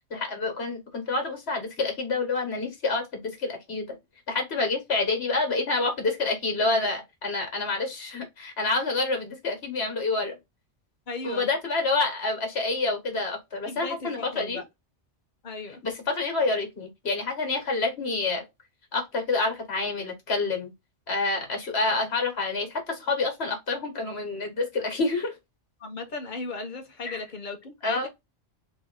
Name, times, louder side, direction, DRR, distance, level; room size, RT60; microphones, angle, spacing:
voice 1, 0.1-4.0 4.3-10.4 11.2-14.6 15.8-18.4 18.9-20.7 21.1-25.3 27.1-27.2 27.8-28.1, left 3 dB, 60° left, 1.7 m, -28 dB
voice 2, 11.1-11.5 13.7-14.6 15.4-15.8 25.8-28.1, left 3 dB, 45° left, 1.0 m, -36 dB
3.8 x 3.1 x 3.9 m
omnidirectional pair, 1.2 m